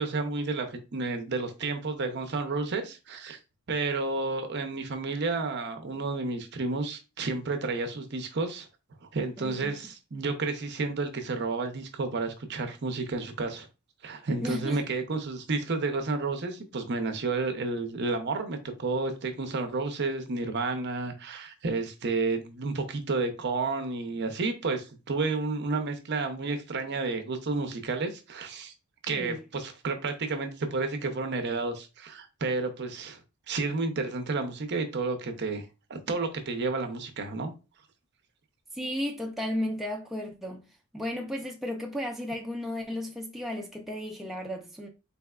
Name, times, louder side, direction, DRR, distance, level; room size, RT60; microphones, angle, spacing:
voice 1, 0.0-3.4 3.7-8.7 9.1-13.7 14.0-28.7 29.0-33.2 33.5-37.5, right 3 dB, 50° right, 0.6 m, -31 dB
voice 2, 9.4-9.7 14.4-14.8 29.1-29.4 38.7-44.9, left 1 dB, ahead, 0.4 m, -34 dB
4.1 x 3.4 x 2.3 m
head